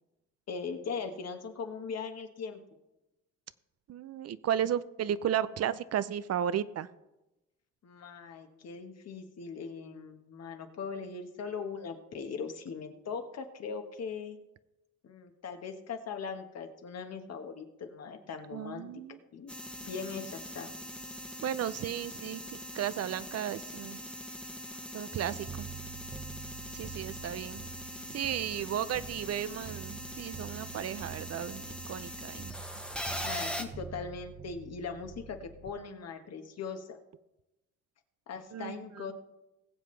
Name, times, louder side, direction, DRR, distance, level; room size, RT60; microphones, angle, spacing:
voice 1, 0.5-2.6 7.8-14.4 15.0-18.9 19.3-19.5 19.8-20.7 33.2-37.0 38.3-39.1, left 5 dB, 55° left, 6 dB, 1.5 m, -40 dB
voice 2, 3.9-6.9 18.5-19.2 21.4-24.0 24.9-25.7 26.7-27.6 28.1-32.5 38.5-39.1, right 10 dB, 55° right, 15 dB, 0.6 m, -34 dB
sound 1, 19.5-33.6, equal, 5° left, 1.2 m, -42 dB
sound 2, 25.1-35.7, right 7 dB, 25° right, 0.9 m, -47 dB
20.5 x 7.6 x 3.3 m, 0.98 s
cardioid pair, 90°, 30 cm